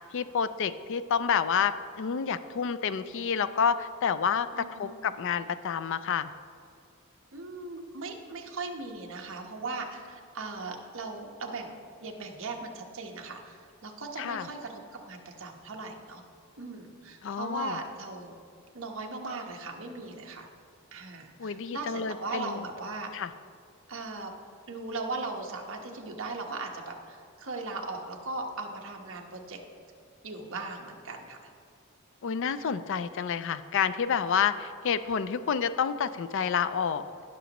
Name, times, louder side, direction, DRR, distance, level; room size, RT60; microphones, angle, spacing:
voice 1, 0.1-6.3 14.2-14.5 17.2-17.8 21.4-22.6 23.1-23.3 32.2-37.0, left 7 dB, 60° left, 13 dB, 0.4 m, -29 dB
voice 2, 4.5-4.9 7.3-11.7 12.0-16.2 16.6-18.3 18.7-20.5 20.9-23.1 23.9-24.3 24.7-29.6 30.2-31.4, right 3 dB, 60° right, 1 dB, 1.1 m, -38 dB
18.5 x 6.1 x 3.0 m, 2.4 s
head